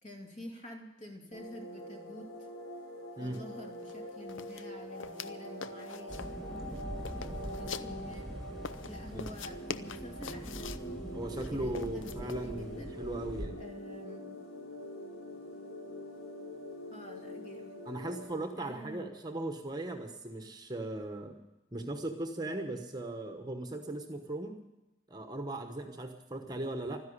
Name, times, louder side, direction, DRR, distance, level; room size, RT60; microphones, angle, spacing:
voice 1, 0.0-2.5 3.2-6.3 7.1-8.3 8.8-11.1 11.5-12.9 13.5-14.3 16.9-17.9 18.5-19.2, equal, 40° left, 2 dB, 2.5 m, -48 dB
sound 1, 1.3-18.4, equal, 85° left, 3.7 m, -45 dB
sound 2, 3.3-3.4 3.7-4.0 4.3-5.3 5.6-6.4 6.7-8.2 8.6-10.9 11.4-12.5, left 6 dB, 70° left, 0.6 m, -43 dB
sound 3, 6.1-13.5, equal, ahead, 2.1 m, -43 dB
voice 2, 11.1-13.6 17.9-21.4 21.7-24.6 25.1-27.0, right 1 dB, 20° right, 5 dB, 1.1 m, -38 dB
13.0 x 10.5 x 9.9 m, 1.0 s
head